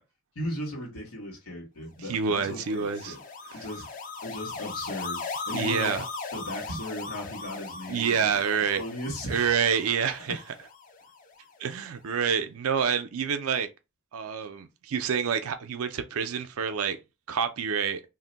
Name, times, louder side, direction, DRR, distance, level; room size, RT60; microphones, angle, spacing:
voice 1, 0.3-3.2 3.5-3.9 4.2-6.0 6.3-8.3 8.8-9.6 10.1-10.4, equal, 85° left, 1.3 m, -37 dB
voice 2, 2.0-3.2 3.5-3.6 5.5-6.0 7.9-8.8 9.3-10.4 11.6-13.7 14.1-17.0 17.3-18.0, right 6 dB, 80° right, 0.5 m, -27 dB
sound 1, 2.2-11.5, left 4 dB, 35° left, 0.4 m, -39 dB
2.6 x 2.1 x 3.9 m
head